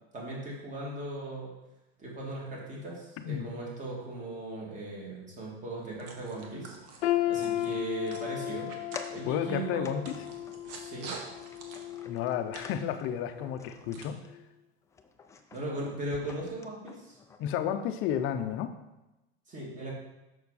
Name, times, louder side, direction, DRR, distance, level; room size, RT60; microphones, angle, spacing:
voice 1, 0.1-1.5 2.0-8.7 9.1-9.9 10.7-11.1 15.5-17.2 19.5-19.9, right 1 dB, 25° right, -3 dB, 2.5 m, -38 dB
voice 2, 3.2-3.5 9.3-10.2 12.1-14.2 17.4-18.8, left 9 dB, 40° left, 8 dB, 0.7 m, -32 dB
sound 1, 5.8-14.1, right 4 dB, 50° right, 1.4 m, -48 dB
sound 2, 7.0-13.0 13.4-13.6 14.3-14.4, left 13 dB, 85° left, 0.6 m, -35 dB
sound 3, 8.9-9.5 9.8-10.2 10.5-13.1 13.6-14.0 14.2-14.5 14.8-17.4, left 5 dB, 10° left, 0.3 m, -48 dB
6.7 x 6.3 x 4.2 m, 1.0 s
supercardioid pair, 130°, 33 cm